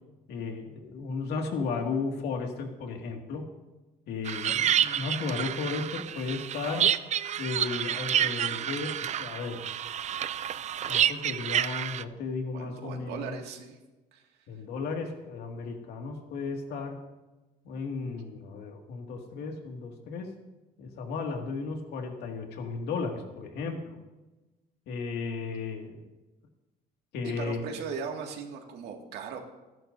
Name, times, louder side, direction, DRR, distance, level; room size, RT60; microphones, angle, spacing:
voice 1, 0.3-3.4 4.1-6.8 7.4-8.9 9.2-9.6 10.8-13.3 14.5-17.0 17.6-20.3 20.8-24.0 24.9-26.0 27.1-27.6, left 4 dB, 80° left, 2 dB, 2.2 m, -34 dB
sound 1, 4.2-12.0, right 10 dB, 45° right, 0.5 m, -29 dB
voice 2, 12.5-13.8 14.1-14.3 27.2-29.4, right 6 dB, 80° right, 2 dB, 2.1 m, -38 dB
27.5 x 11.0 x 2.7 m, 1.1 s
cardioid pair, 110°, 17 cm